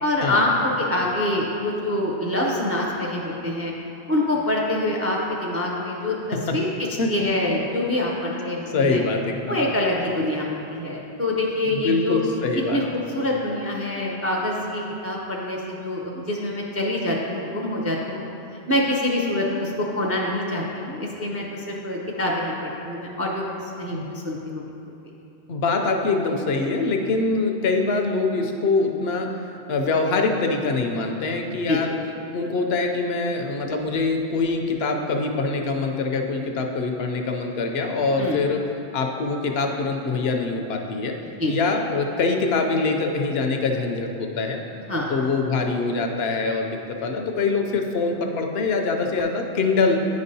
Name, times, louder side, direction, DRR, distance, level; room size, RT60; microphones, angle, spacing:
voice 1, 0.0-3.7 4.1-6.7 7.1-9.0 9.5-12.2 12.5-18.3 18.7-24.6 31.7-31.8 38.2-38.4 41.4-41.5 44.9-45.1, left 1 dB, 20° right, -2 dB, 0.4 m, -25 dB
voice 2, 7.0-7.5 8.7-9.6 11.6-12.8 23.9-24.1 25.5-29.3 29.7-31.9 32.3-38.6 38.9-41.1 41.5-44.6 45.1-50.0, left 3 dB, 70° left, 3 dB, 0.8 m, -24 dB
9.7 x 5.2 x 2.7 m, 2.9 s
omnidirectional pair, 1.1 m